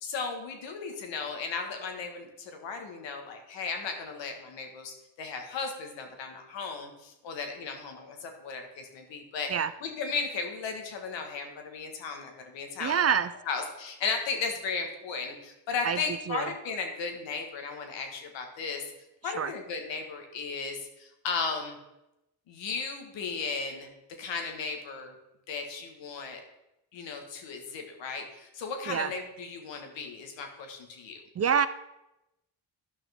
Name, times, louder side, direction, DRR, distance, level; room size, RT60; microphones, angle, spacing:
voice 1, 0.0-9.5 9.8-13.2 13.5-18.8 19.2-21.8 22.5-23.9 24.2-25.1 25.5-26.4 26.9-31.2, left 5 dB, 90° left, 4 dB, 1.5 m, -35 dB
voice 2, 12.8-13.3 15.8-16.0 16.3-16.5 19.4-19.5 28.9-29.1 31.4-31.7, right 7 dB, 35° right, 13 dB, 0.4 m, -26 dB
11.5 x 6.0 x 3.4 m, 0.92 s
cardioid pair, 70°, 43 cm